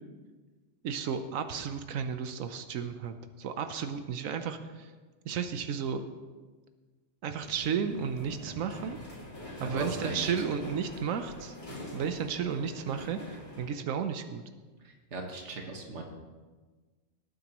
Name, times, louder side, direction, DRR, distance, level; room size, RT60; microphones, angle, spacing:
voice 1, 0.8-4.9 5.2-6.0 7.2-9.0 9.6-11.6 11.9-14.4, right 7 dB, 85° right, 9 dB, 1.1 m, -33 dB
sound 1, 7.3-13.7, left 1 dB, 35° left, 2.3 m, -44 dB
voice 2, 9.6-10.3 14.8-16.0, right 2 dB, 60° right, 2 dB, 1.8 m, -38 dB
18.5 x 9.2 x 3.0 m, 1.3 s
omnidirectional pair, 1.4 m